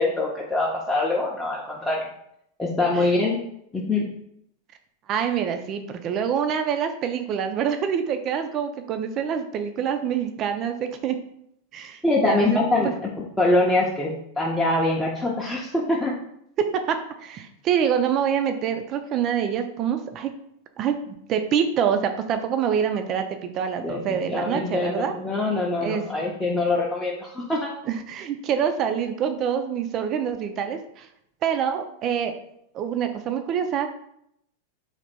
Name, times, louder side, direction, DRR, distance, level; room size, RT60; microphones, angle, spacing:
voice 1, 0.0-2.1 2.6-3.4 3.7-4.1 12.0-12.9 13.4-16.1 23.8-27.7, left 2 dB, 5° left, -5 dB, 0.6 m, -24 dB
voice 2, 5.1-11.2 11.7-12.6 16.6-20.3 20.8-25.1 25.8-26.0 27.9-31.1 31.4-32.4 32.7-33.9, right 8 dB, 35° right, 7 dB, 0.4 m, -26 dB
3.3 x 2.8 x 4.0 m, 0.75 s
figure-of-eight pair, 90°, 0 cm